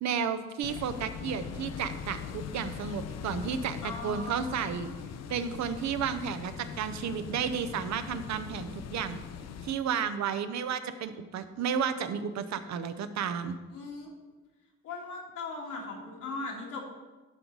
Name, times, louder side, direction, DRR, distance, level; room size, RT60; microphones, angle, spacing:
voice 1, 0.0-4.9 5.3-9.2 9.6-13.6, right 7 dB, 65° right, 11 dB, 0.7 m, -32 dB
sound 1, 0.6-9.7, left 7 dB, 60° left, 0.6 m, -41 dB
voice 2, 3.8-5.0 13.7-14.1 14.8-16.8, left 3 dB, 80° left, -2 dB, 2.2 m, -39 dB
12.0 x 4.0 x 4.6 m, 1.2 s
cardioid pair, 90°, 30 cm